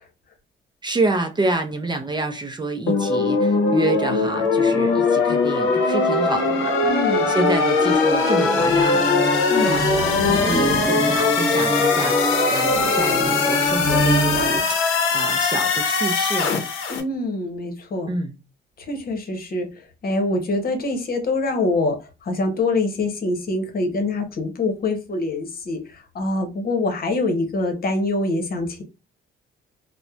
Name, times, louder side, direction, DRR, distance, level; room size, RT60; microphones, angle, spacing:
voice 1, 0.8-6.8 7.3-16.5 18.1-18.4, right 2 dB, 20° right, 0.4 m, -28 dB
sound 1, 2.9-17.0, left 4 dB, 90° left, 0.6 m, -20 dB
voice 2, 6.8-7.3 9.5-9.9 16.9-18.1 18.8-28.8, left 2 dB, 50° left, 0.9 m, -25 dB
sound 2, 7.8-14.6, right 1 dB, 25° left, 1.1 m, -25 dB
2.8 x 2.1 x 2.3 m
cardioid pair, 90°, 20 cm